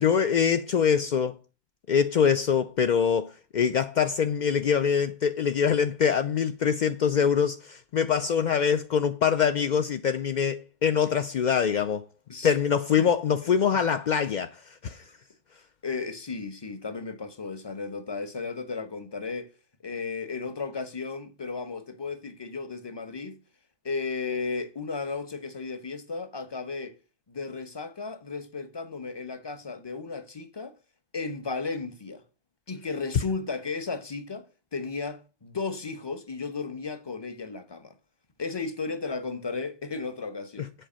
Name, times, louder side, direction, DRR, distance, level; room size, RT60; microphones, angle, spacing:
voice 1, 0.0-1.4 1.9-12.1 12.4-15.1, left 7 dB, 60° left, 0.5 m, -24 dB
voice 2, 13.4-13.8 15.8-19.5 19.8-23.4 23.8-27.0 27.3-30.8 31.1-32.2 32.7-34.5 34.7-38.0 38.4-40.7, left 4 dB, 20° left, 0.9 m, -34 dB
7.9 x 4.9 x 7.4 m
omnidirectional pair, 1.4 m